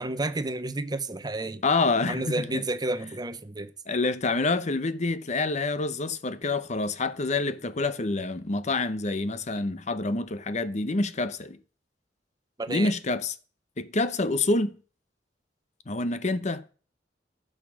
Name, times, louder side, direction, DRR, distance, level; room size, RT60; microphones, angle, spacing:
voice 1, 0.0-1.6 2.1-3.7 12.6-12.9, right 2 dB, 25° right, 0.8 m, -31 dB
voice 2, 1.6-2.7 3.9-11.6 12.7-13.4 13.8-14.8 15.9-16.7, left 3 dB, 40° left, 0.8 m, -27 dB
12.0 x 6.5 x 6.2 m
head